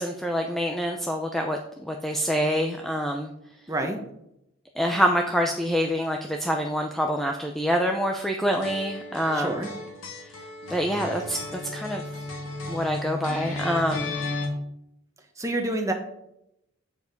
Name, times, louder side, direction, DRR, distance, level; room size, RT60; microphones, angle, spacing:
voice 1, 0.0-3.3 4.8-9.6 10.7-12.0 12.7-14.2, equal, ahead, 2 dB, 0.6 m, -26 dB
voice 2, 3.7-4.0 9.3-9.7 15.4-15.9, right 1 dB, 15° right, 3 dB, 1.3 m, -28 dB
sound 1, 8.6-14.5, left 2 dB, 80° left, 2.4 m, -34 dB
8.3 x 7.1 x 5.2 m, 0.80 s
head